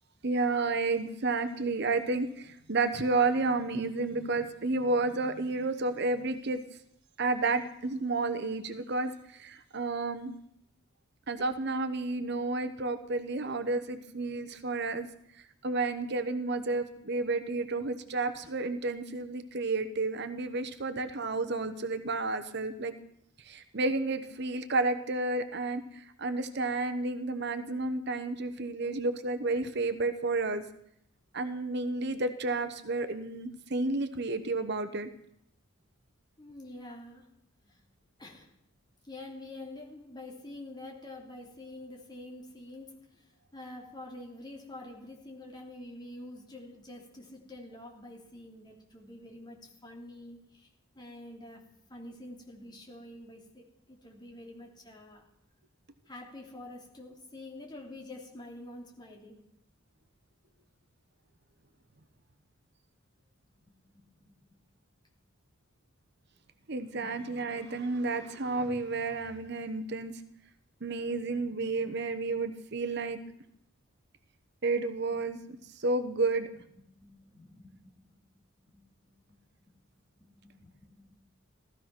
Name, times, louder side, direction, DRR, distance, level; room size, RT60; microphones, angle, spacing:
voice 1, 0.2-6.6 7.2-10.3 11.3-15.1 15.6-22.9 23.5-30.6 31.3-35.1 66.7-70.1 70.8-73.2 74.6-75.4 75.8-76.5, right 3 dB, 55° right, 10 dB, 1.0 m, -31 dB
voice 2, 36.4-37.3 37.6-37.8 38.2-38.5 39.0-50.7 50.9-51.6 51.9-55.2 56.1-59.4 63.9-64.3 67.0-67.1 75.1-75.2 77.0-78.2 78.6-78.9 79.3-79.4 79.7-79.8 80.2-81.2, left 1 dB, 20° left, 0 dB, 3.0 m, -47 dB
16.5 x 14.0 x 6.0 m, 0.73 s
head